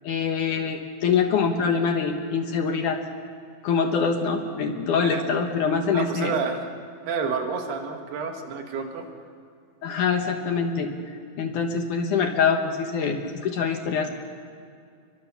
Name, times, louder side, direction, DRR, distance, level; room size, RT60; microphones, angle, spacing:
voice 1, 0.0-3.0 3.6-6.3 9.8-14.1, left 5 dB, 60° left, 4 dB, 2.4 m, -24 dB
voice 2, 5.9-6.7 7.1-9.0, right 5 dB, 75° right, 3 dB, 4.0 m, -29 dB
29.5 x 23.0 x 7.1 m, 2.3 s
omnidirectional pair, 4.6 m